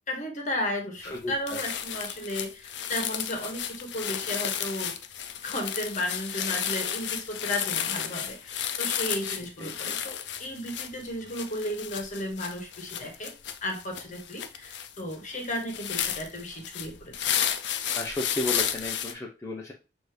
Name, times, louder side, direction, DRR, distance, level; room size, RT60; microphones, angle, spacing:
voice 1, 0.1-4.9 5.4-13.3 13.6-17.3, left 1 dB, 45° left, 2 dB, 1.1 m, -34 dB
sound 1, 1.0-1.2 1.5-19.1, left 9 dB, 85° left, 0.5 m, -33 dB
voice 2, 1.1-1.6 9.2-10.1 18.0-19.7, left 2 dB, 15° left, -1 dB, 0.5 m, -34 dB
6.2 x 2.7 x 3.2 m, 0.31 s
head